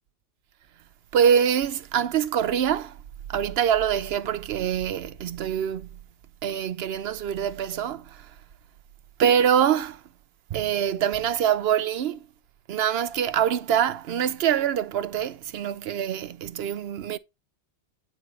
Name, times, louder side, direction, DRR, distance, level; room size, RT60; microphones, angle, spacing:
voice 1, 1.1-3.0 3.3-5.9 6.4-8.3 9.2-10.0 10.5-12.3 12.7-17.2, right 9 dB, 70° right, 0.8 m, -24 dB
9.4 x 3.7 x 4.1 m
omnidirectional pair, 1.1 m